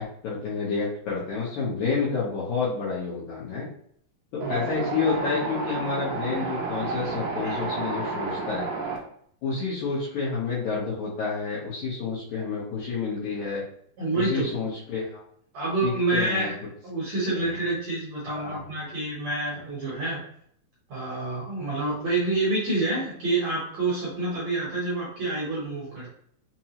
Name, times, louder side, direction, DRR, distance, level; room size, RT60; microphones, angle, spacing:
voice 1, 0.0-3.7 4.3-8.7 9.4-13.6 14.1-15.2 15.8-16.5 17.3-17.6 18.3-18.6, left 5 dB, 70° left, -7 dB, 1.9 m, -29 dB
Wind, 4.4-9.0, right 3 dB, 80° right, 1.7 m, -31 dB
voice 2, 14.0-14.5 15.5-16.5 16.8-20.2 20.9-26.1, right 2 dB, 65° right, -6 dB, 1.8 m, -28 dB
5.7 x 2.0 x 2.8 m, 0.64 s
omnidirectional pair, 4.3 m